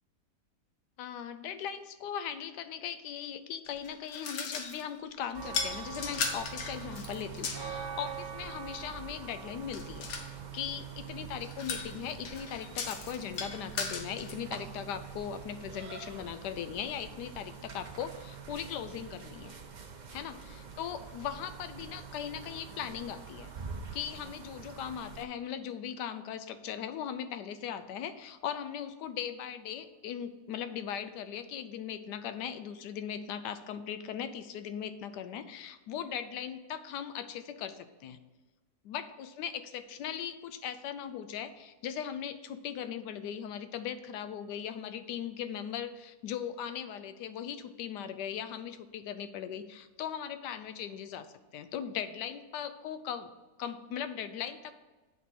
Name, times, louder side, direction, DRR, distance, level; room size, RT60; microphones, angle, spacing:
voice 1, 1.0-10.1 10.5-19.5 20.1-23.5 23.9-38.2 38.8-51.3 51.5-53.3 53.6-54.7, left 9 dB, 90° left, 11 dB, 1.2 m, -39 dB
sound 1, 3.7-4.9 5.4-7.7 9.7-10.3 11.4-14.3, left 5 dB, 65° left, 1.3 m, -37 dB
sound 2, 5.3-25.2, right 6 dB, 50° right, 0.5 m, -44 dB
8.4 x 3.7 x 5.8 m, 1.2 s
omnidirectional pair, 1.7 m